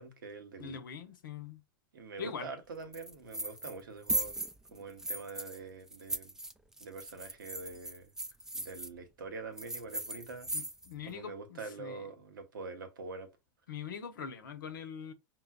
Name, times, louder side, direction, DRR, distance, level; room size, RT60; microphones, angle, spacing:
voice 1, 0.0-0.8 1.9-4.4 4.7-6.3 6.8-8.1 8.5-10.5 11.1-13.3, right 4 dB, 80° right, 0.9 m, -45 dB
voice 2, 0.6-1.6 2.2-2.5 10.5-12.0 13.7-15.1, left 7 dB, 80° left, 0.8 m, -43 dB
sound 1, 2.9-3.8 4.1-5.6 5.9-8.9 9.6-11.0, right 1 dB, 5° right, 0.3 m, -38 dB
5.4 x 2.2 x 2.3 m
hypercardioid pair, 100°, 11 cm